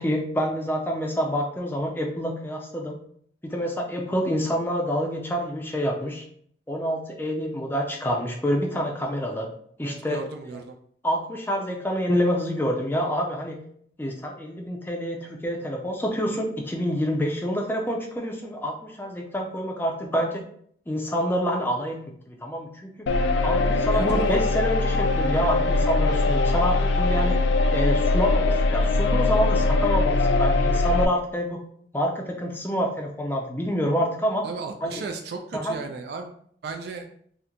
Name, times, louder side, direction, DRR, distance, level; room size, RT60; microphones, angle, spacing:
voice 1, 0.0-3.0 3.4-6.2 6.7-9.5 9.8-10.2 11.0-13.6 14.0-20.4 20.9-22.9 23.4-27.4 27.7-31.6 31.9-34.4 34.8-35.0 35.5-35.7, equal, 10° left, 1 dB, 0.4 m, -27 dB
voice 2, 9.8-10.8 23.9-24.4 34.4-36.3 36.6-37.1, right 4 dB, 65° right, 4 dB, 0.3 m, -35 dB
sound 1, 23.1-31.1, left 3 dB, 90° left, 0.3 m, -22 dB
2.9 x 2.1 x 3.7 m, 0.63 s
head